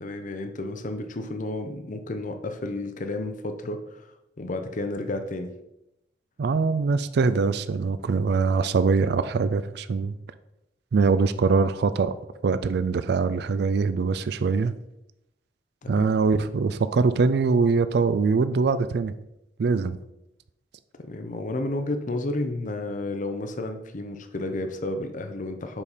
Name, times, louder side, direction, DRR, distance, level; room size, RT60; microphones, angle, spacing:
voice 1, 0.0-4.1 4.4-5.5 15.8-16.1 21.0-25.8, left 2 dB, 45° left, 7 dB, 0.7 m, -31 dB
voice 2, 6.4-10.2 10.9-12.2 12.4-14.7 15.9-19.1 19.6-20.0, right 4 dB, 65° right, 12 dB, 0.4 m, -23 dB
7.1 x 5.2 x 4.2 m, 0.86 s
head